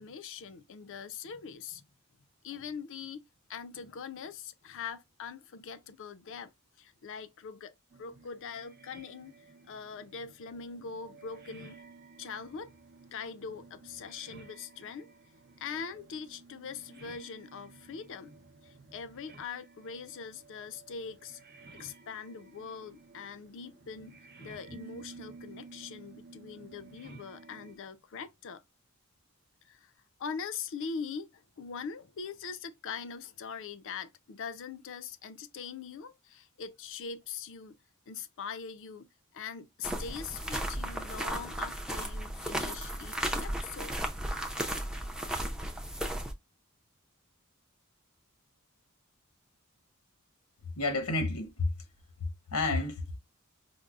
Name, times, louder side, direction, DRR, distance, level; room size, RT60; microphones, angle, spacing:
voice 1, 0.0-1.8 2.4-3.2 3.5-6.5 6.8-9.3 9.7-11.8 12.2-12.7 13.1-15.1 15.6-18.3 18.6-21.4 21.7-28.6 29.6-29.9 30.2-37.8 38.1-44.0, left 6 dB, 60° left, 0.5 m, -42 dB
sound 1, 7.9-27.8, right 3 dB, 50° right, 0.7 m, -54 dB
sound 2, 39.8-46.3, right 1 dB, 5° right, 0.4 m, -35 dB
voice 2, 50.8-51.7 52.2-53.2, left 2 dB, 90° left, 0.9 m, -31 dB
5.2 x 2.0 x 2.3 m
head